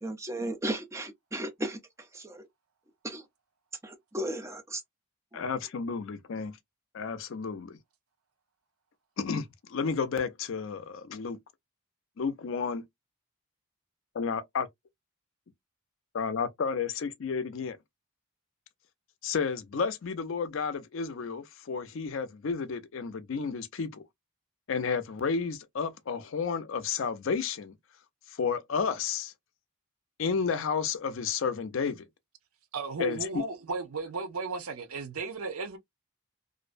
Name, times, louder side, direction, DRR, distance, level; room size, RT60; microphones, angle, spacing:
voice 1, 0.0-1.8 2.1-2.5 3.0-3.2 3.8-4.8 5.3-5.4, right 1 dB, 15° right, 0.5 m, -35 dB
voice 2, 5.3-6.6 6.9-7.8 9.2-11.4 12.2-12.8 14.1-14.7 16.1-17.8 19.2-24.0 24.7-27.7 28.4-29.3 30.2-32.0 33.0-33.2, left 5 dB, 65° left, 0.4 m, -31 dB
voice 3, 32.7-35.8, right 4 dB, 85° right, 0.6 m, -35 dB
2.5 x 2.1 x 2.4 m
head